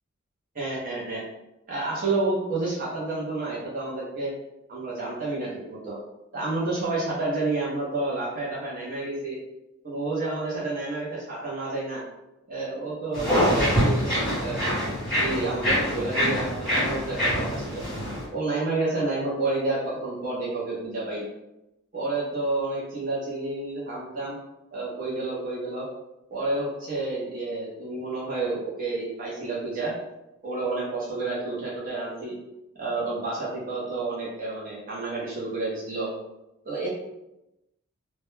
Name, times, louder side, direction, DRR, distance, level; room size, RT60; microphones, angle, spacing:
voice 1, 0.5-1.2 1.7-4.3 4.7-6.0 6.3-9.4 9.8-12.0 12.5-14.0 14.4-17.8 18.3-21.3 21.9-24.4 24.7-25.9 26.3-30.0 30.4-32.3 32.8-36.1 36.6-36.9, right 2 dB, 40° right, -6 dB, 0.6 m, -30 dB
sound 1, 13.1-18.2, equal, ahead, 1.1 m, -25 dB
2.2 x 2.1 x 3.1 m, 0.92 s
head